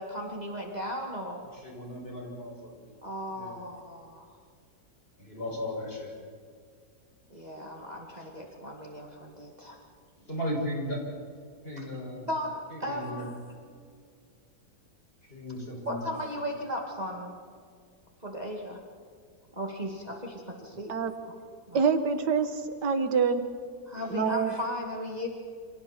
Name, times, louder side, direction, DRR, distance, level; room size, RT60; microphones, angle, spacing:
voice 1, 0.0-1.5 3.0-4.3 7.3-9.8 11.8-11.9 12.3-13.4 15.8-17.4 18.2-18.8 19.6-20.9 21.7-21.8 23.9-25.3, equal, 25° right, 0 dB, 2.4 m, -36 dB
voice 2, 1.5-2.8 3.3-3.5 5.2-6.1 10.3-11.0 11.6-12.2 12.7-13.2 15.3-16.0 24.0-24.1, left 1 dB, 35° left, -2 dB, 6.7 m, -36 dB
voice 3, 21.7-23.4 24.1-24.5, right 5 dB, 85° right, 8 dB, 1.9 m, -26 dB
29.0 x 27.0 x 4.5 m, 2.1 s
omnidirectional pair, 1.8 m